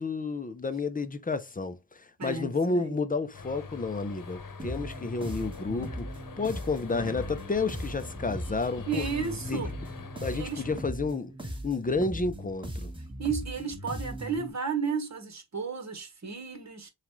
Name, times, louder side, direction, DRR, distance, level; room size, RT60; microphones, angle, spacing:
voice 1, 0.0-6.1 6.4-9.0 9.5-9.6 10.2-11.3 11.6-12.9, left 3 dB, 25° left, 0.6 m, -31 dB
voice 2, 2.2-3.0 8.9-9.7 10.3-10.6 13.2-16.9, right 5 dB, 50° right, 1.3 m, -33 dB
sound 1, 3.3-10.8, left 4 dB, 65° left, 1.0 m, -44 dB
sound 2, 4.6-14.5, right 1 dB, 15° right, 1.5 m, -39 dB
7.1 x 2.4 x 3.1 m
wide cardioid pair, 110°, 35 cm